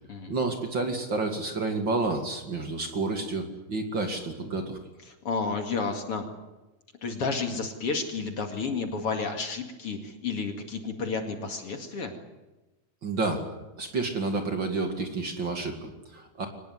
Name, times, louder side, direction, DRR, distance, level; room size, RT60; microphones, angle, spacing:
voice 1, 0.3-4.8 13.0-13.5 13.8-16.5, right 3 dB, 40° right, 5 dB, 2.7 m, -30 dB
voice 2, 5.1-6.3 7.0-12.2, left 4 dB, 50° left, 5 dB, 3.0 m, -31 dB
24.0 x 19.5 x 9.7 m, 1.1 s
omnidirectional pair, 3.5 m